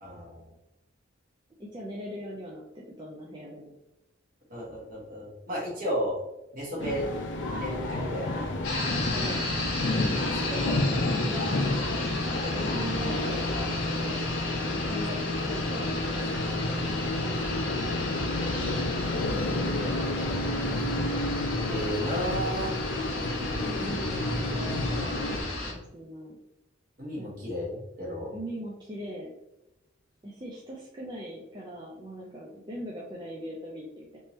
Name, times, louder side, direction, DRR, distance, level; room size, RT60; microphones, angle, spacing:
voice 1, 0.0-0.5 4.5-6.2 6.5-7.1 7.6-8.5 10.4-10.8 17.9-18.3 21.7-22.7 27.0-28.3, equal, 45° right, -4 dB, 1.4 m, -34 dB
voice 2, 1.6-3.7 8.9-9.4 10.3-11.6 12.2-14.2 14.8-16.9 17.3-18.0 19.3-20.2 23.5-26.4 27.2-27.3 28.3-29.3 30.2-34.2, equal, 20° right, -4 dB, 0.5 m, -40 dB
sound 1, 6.8-25.4, left 2 dB, 65° left, 0.5 m, -30 dB
sound 2, 7.4-13.8, left 2 dB, 45° left, 0.9 m, -40 dB
sound 3, 8.6-25.7, left 2 dB, 85° left, 1.0 m, -35 dB
3.5 x 2.8 x 3.0 m, 0.91 s
head